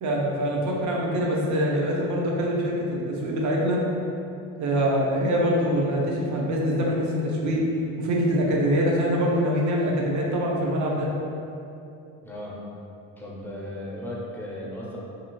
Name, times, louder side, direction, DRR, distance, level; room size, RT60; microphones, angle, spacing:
voice 1, 0.0-3.8 4.6-7.6 8.0-11.1, equal, 50° right, -2 dB, 0.6 m, -24 dB
voice 2, 12.2-12.6 13.2-15.0, left 1 dB, 5° left, -6 dB, 0.6 m, -36 dB
2.6 x 2.3 x 2.9 m, 2.7 s
cardioid pair, 95°, 37 cm